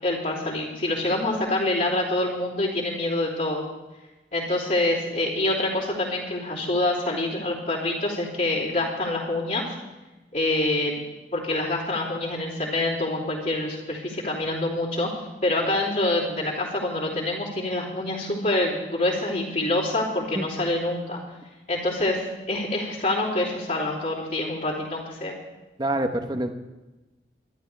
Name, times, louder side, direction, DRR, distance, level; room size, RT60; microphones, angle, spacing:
voice 1, 0.0-3.6 4.3-9.7 10.3-10.9 11.3-21.2 21.7-25.3, left 2 dB, 50° left, -9 dB, 3.4 m, -26 dB
voice 2, 25.8-26.5, right 1 dB, 25° right, 6 dB, 1.0 m, -26 dB
24.5 x 12.0 x 3.4 m, 1.1 s
head